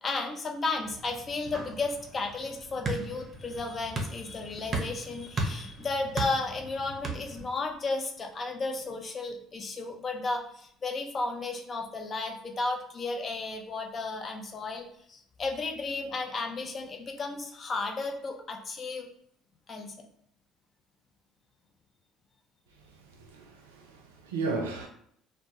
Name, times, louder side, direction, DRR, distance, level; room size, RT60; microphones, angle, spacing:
voice 1, 0.0-19.1 19.7-19.9, left 3 dB, 40° left, 0.5 m, -34 dB
sound 1, 0.8-7.5, right 3 dB, 45° right, 0.6 m, -37 dB
voice 2, 22.8-24.9, right 3 dB, 90° right, 0.4 m, -35 dB
2.1 x 2.1 x 2.8 m
hypercardioid pair, 60°, 0 cm